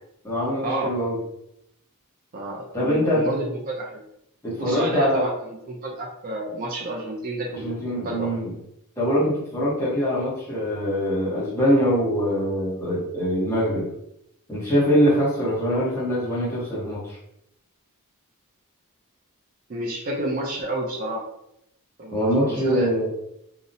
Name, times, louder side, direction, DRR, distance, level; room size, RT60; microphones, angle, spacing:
voice 1, 0.2-1.2 2.7-3.3 4.4-5.3 7.5-8.5 9.0-13.9 14.5-17.2 22.1-23.1, equal, 10° left, -7 dB, 0.8 m, -23 dB
voice 2, 2.3-4.0 4.6-7.8 8.0-8.3 19.7-21.2 22.0-22.9, right 1 dB, 40° right, -1 dB, 0.4 m, -30 dB
2.7 x 2.0 x 2.5 m, 0.78 s
head